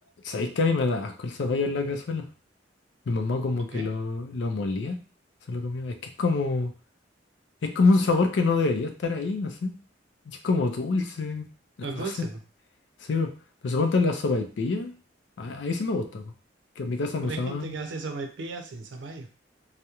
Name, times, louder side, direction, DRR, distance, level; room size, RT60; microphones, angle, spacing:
voice 1, 0.2-2.2 3.1-5.0 5.5-6.7 7.6-9.7 10.3-11.4 11.9-12.0 13.0-13.3 13.6-14.9 15.4-16.3 16.8-17.8, left 3 dB, 75° left, 6 dB, 0.4 m, -26 dB
voice 2, 11.8-12.4 17.2-19.3, right 3 dB, 80° right, 5 dB, 0.5 m, -35 dB
2.3 x 2.0 x 2.8 m, 0.37 s
head